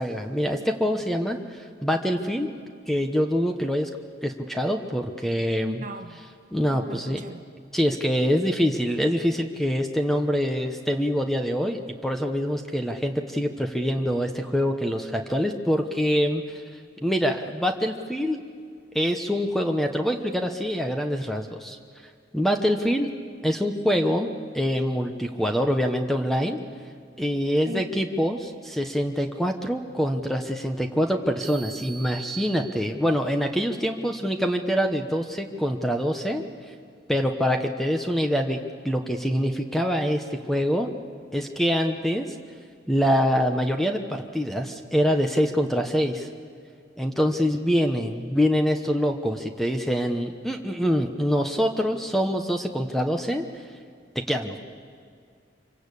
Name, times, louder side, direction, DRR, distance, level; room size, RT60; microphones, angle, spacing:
voice 1, 0.0-2.5 2.9-3.9 4.2-5.8 6.5-7.2 7.7-16.6 17.0-18.4 18.9-21.8 22.3-23.1 23.4-26.6 27.2-36.4 37.1-38.6 38.8-40.9 41.3-42.2 42.9-46.3 47.0-53.4 54.1-54.6, equal, ahead, 4 dB, 1.0 m, -25 dB
voice 2, 5.6-6.2 6.7-7.4 27.7-27.8, right 1 dB, 40° right, 7 dB, 1.3 m, -38 dB
sound 1, 31.4-33.3, right 7 dB, 70° right, 1.4 m, -41 dB
26.0 x 24.0 x 8.4 m, 2.2 s
head